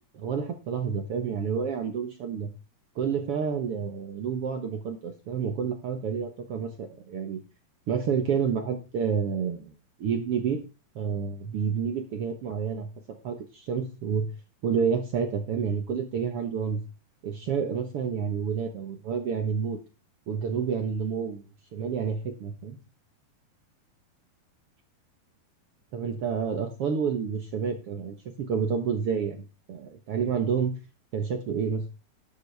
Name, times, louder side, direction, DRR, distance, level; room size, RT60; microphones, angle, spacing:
voice 1, 0.1-2.5 2.9-7.4 7.9-9.7 10.0-10.6 10.9-12.9 13.2-14.3 14.6-16.8 17.2-19.8 20.3-21.4 21.7-22.8 25.9-30.7 31.1-31.9, right 6 dB, 65° right, 5 dB, 1.4 m, -29 dB
11.5 x 11.0 x 3.4 m, 0.30 s
omnidirectional pair, 4.2 m